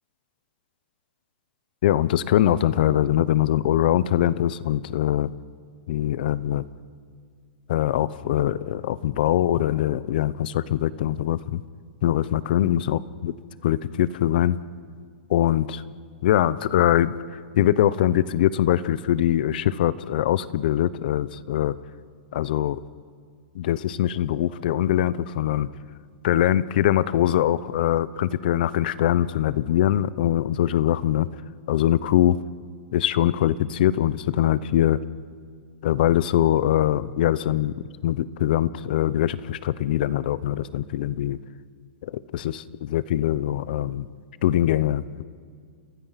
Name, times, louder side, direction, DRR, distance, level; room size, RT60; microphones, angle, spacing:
voice 1, 1.8-5.3 5.9-6.6 7.7-11.6 12.0-13.3 13.6-14.6 15.3-15.8 16.2-21.8 22.3-22.8 23.5-25.7 26.2-31.3 31.7-32.4 32.9-35.0 35.8-41.4 42.0-44.1 44.4-45.0, left 12 dB, 55° left, 17 dB, 0.8 m, -22 dB
30.0 x 28.0 x 5.9 m, 2.1 s
hypercardioid pair, 165°, 6 cm